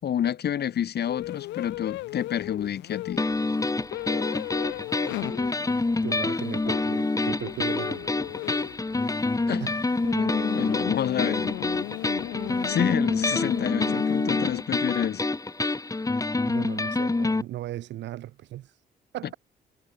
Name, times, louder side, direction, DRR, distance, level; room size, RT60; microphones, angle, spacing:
voice 1, 0.0-3.2 9.5-9.7 10.6-11.5 12.6-15.3, left 9 dB, 65° left, 3.6 m, -28 dB
sound 1, 1.1-14.6, left 18 dB, 90° left, 3.4 m, -36 dB
sound 2, 3.2-17.4, left 3 dB, 20° left, 1.4 m, -27 dB
voice 2, 6.0-8.4 9.7-9.8 16.5-18.7 19.1-19.3, right 14 dB, 80° right, 4.2 m, -37 dB
supercardioid pair, 65°, 18 cm